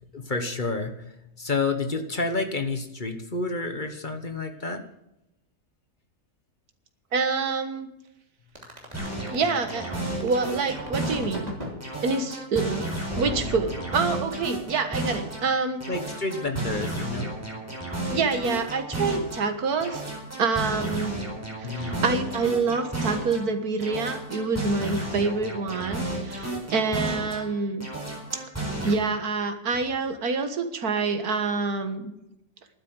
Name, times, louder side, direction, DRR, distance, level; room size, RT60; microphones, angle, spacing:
voice 1, 0.1-4.9 15.9-17.3 21.6-22.4 29.7-29.8, left 3 dB, 35° left, 7 dB, 1.3 m, -30 dB
voice 2, 7.1-7.9 9.3-9.9 10.2-11.5 12.0-12.9 13.2-15.8 18.1-20.1 20.4-21.2 21.6-27.9 28.8-32.1, right 4 dB, 75° right, 8 dB, 2.0 m, -27 dB
sound 1, 8.6-11.8 13.1-14.5, equal, 25° right, 3.1 m, -36 dB
sound 2, 8.9-11.5 11.8-15.5 15.8-19.5 19.8-23.5 23.8-27.5 27.8-28.9, right 1 dB, 10° right, 4.4 m, -32 dB
12.0 x 9.7 x 8.0 m, 0.87 s
omnidirectional pair, 1.6 m